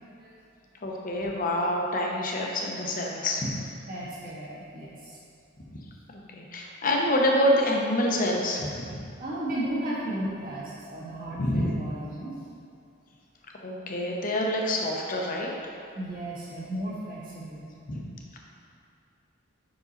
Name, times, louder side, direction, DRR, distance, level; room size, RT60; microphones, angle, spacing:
voice 1, 0.8-3.5 6.1-8.9 11.4-11.8 13.6-15.6 17.9-18.0, left 1 dB, 40° left, -1 dB, 0.7 m, -27 dB
voice 2, 3.9-5.2 9.2-12.4 15.9-17.6, right 1 dB, 45° right, -7 dB, 1.4 m, -34 dB
5.4 x 4.8 x 4.0 m, 2.4 s
head